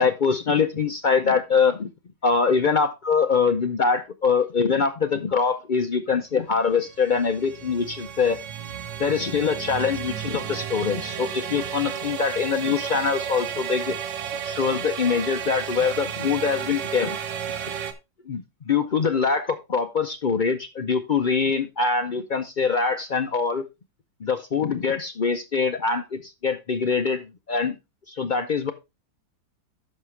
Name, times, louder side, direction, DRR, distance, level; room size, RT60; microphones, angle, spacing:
voice 1, 0.0-1.9 2.2-8.4 9.0-14.0 14.4-17.2 18.3-23.7 24.2-27.7 28.1-28.7, left 5 dB, 75° left, 7 dB, 0.4 m, -23 dB
sound 1, 6.5-17.9, right 8 dB, 90° right, 1.7 m, -33 dB
10.5 x 6.6 x 3.3 m, 0.24 s
omnidirectional pair, 1.8 m